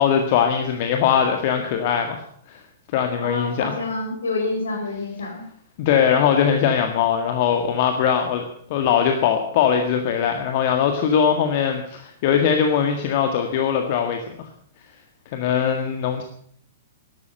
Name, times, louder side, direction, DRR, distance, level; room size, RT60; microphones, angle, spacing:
voice 1, 0.0-2.6 2.9-3.7 5.8-8.4 8.7-14.5 15.3-16.2, left 8 dB, 45° left, 5 dB, 1.8 m, -21 dB
voice 2, 3.2-5.4, left 3 dB, 70° left, 2 dB, 6.0 m, -27 dB
13.0 x 12.5 x 7.9 m, 0.62 s
figure-of-eight pair, 110°, 0 cm